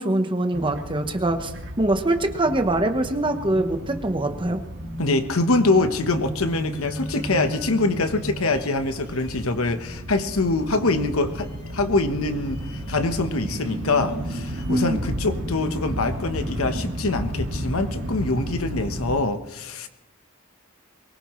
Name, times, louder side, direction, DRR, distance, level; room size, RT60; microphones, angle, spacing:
voice 1, 0.0-1.5 1.8-4.6 14.7-15.1, right 1 dB, 25° right, 6 dB, 1.1 m, -23 dB
sound 1, 0.5-19.2, right 1 dB, 55° right, 1.9 m, -33 dB
voice 2, 5.0-12.6 12.9-19.9, left 3 dB, 75° left, 8 dB, 1.2 m, -24 dB
sound 2, 5.9-14.8, left 1 dB, 55° left, 2.5 m, -47 dB
22.5 x 19.5 x 3.2 m, 0.95 s
head